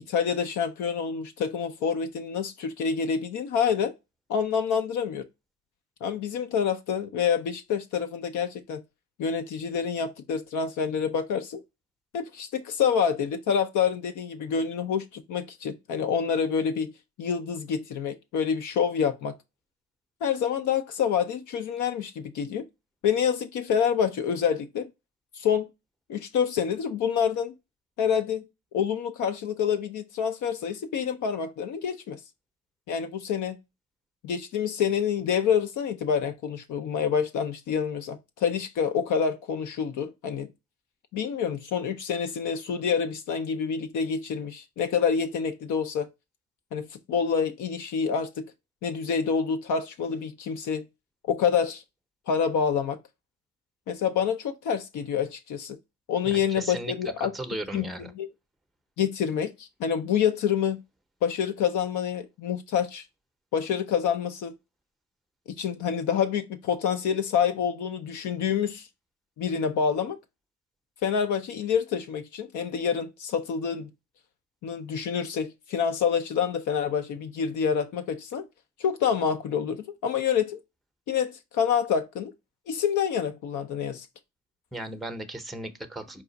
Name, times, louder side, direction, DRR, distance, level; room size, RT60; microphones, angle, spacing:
voice 1, 0.1-3.9 4.3-5.2 6.0-8.8 9.2-11.6 12.1-16.9 17.2-19.3 20.2-22.7 23.0-24.9 25.3-25.7 26.1-27.5 28.0-28.4 28.7-32.2 32.9-33.6 34.2-40.5 41.1-46.1 46.7-48.4 48.8-50.8 51.3-51.8 52.3-53.0 53.9-55.8 56.1-57.3 57.7-58.3 59.0-60.8 61.2-63.0 63.5-64.5 65.6-68.9 69.4-70.2 71.0-73.9 74.6-78.5 78.8-80.6 81.1-82.3 82.7-84.1, left 7 dB, 80° left, 0.6 m, -27 dB
voice 2, 56.2-58.1 84.7-86.2, right 1 dB, ahead, 0.6 m, -36 dB
4.8 x 2.4 x 3.9 m
cardioid pair, 90°, 30 cm